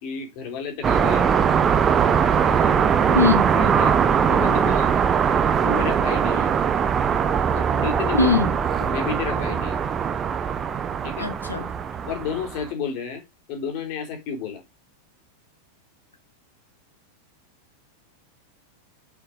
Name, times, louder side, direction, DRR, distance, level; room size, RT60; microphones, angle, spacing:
voice 1, 0.0-1.3 2.0-5.0 5.6-6.5 7.5-8.3 8.8-9.9 11.0-11.3 12.0-13.2 13.5-14.6, left 6 dB, 45° left, 3.8 m, -32 dB
sound 1, 0.8-12.7, right 7 dB, 25° right, 1.1 m, -21 dB
voice 2, 3.1-3.5 8.1-8.5 11.2-11.7, left 4 dB, 80° left, 1.9 m, -20 dB
7.8 x 5.9 x 5.2 m
figure-of-eight pair, 90°, 0 cm